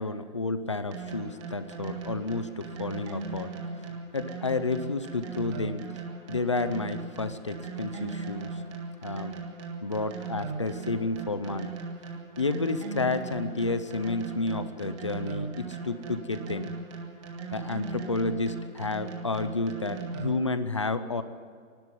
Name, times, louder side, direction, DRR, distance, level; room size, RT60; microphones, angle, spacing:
voice 1, 0.0-3.5 4.1-5.8 6.3-8.5 9.0-9.3 9.8-11.7 12.4-16.7 17.5-21.2, left 3 dB, 25° left, 12 dB, 0.5 m, -31 dB
sound 1, 0.9-20.6, right 4 dB, 20° right, 1.7 m, -38 dB
27.0 x 12.5 x 9.4 m, 2.1 s
hypercardioid pair, 170°, 41 cm